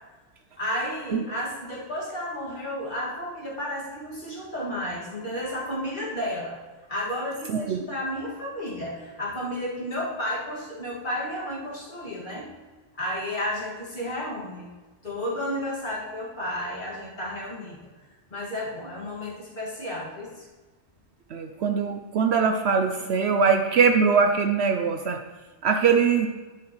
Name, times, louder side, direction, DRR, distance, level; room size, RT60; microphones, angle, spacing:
voice 1, 0.6-6.6 6.9-12.5 13.0-14.7 15.0-17.8 18.3-20.5, left 1 dB, 40° left, -6 dB, 2.5 m, -32 dB
voice 2, 21.3-25.2 25.6-26.3, right 5 dB, 65° right, 6 dB, 0.8 m, -22 dB
10.5 x 7.9 x 3.2 m, 1.2 s
omnidirectional pair, 1.3 m